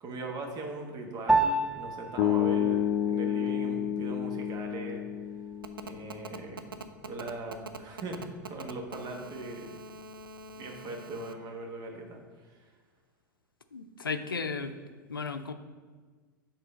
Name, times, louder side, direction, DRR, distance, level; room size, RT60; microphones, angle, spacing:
voice 1, 0.0-5.0 5.8-9.8 10.5-12.7, right 2 dB, 35° right, 2 dB, 1.2 m, -40 dB
Piano, 1.3-10.9, right 2 dB, 5° right, 0.3 m, -35 dB
sound 1, 2.2-6.3, left 10 dB, 45° left, 0.6 m, -30 dB
Telephone, 5.6-11.3, right 3 dB, 85° right, 0.5 m, -43 dB
voice 2, 13.7-14.7 15.1-15.5, left 5 dB, 90° left, 10 dB, 0.5 m, -34 dB
6.6 x 3.9 x 5.2 m, 1.5 s
figure-of-eight pair, 95°, 11 cm